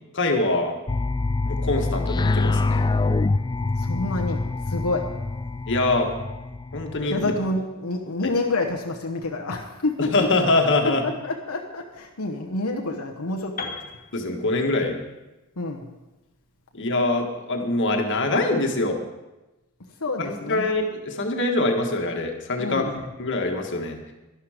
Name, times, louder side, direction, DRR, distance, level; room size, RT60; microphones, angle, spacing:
voice 1, 0.1-0.8 1.5-2.9 5.7-6.1 6.7-7.3 10.0-11.0 14.1-15.0 16.7-19.0 20.2-22.8 23.2-24.0, left 2 dB, 60° left, 3 dB, 1.7 m, -24 dB
sound 1, 0.9-7.6, left 3 dB, 20° left, 0.3 m, -25 dB
voice 2, 3.8-5.1 7.1-10.1 11.0-13.6 15.6-15.9 20.0-20.7 22.6-23.0, left 2 dB, 85° left, 2 dB, 1.1 m, -28 dB
Piano, 13.6-17.5, left 4 dB, 40° left, 1.6 m, -40 dB
12.0 x 11.5 x 5.0 m, 1.0 s
head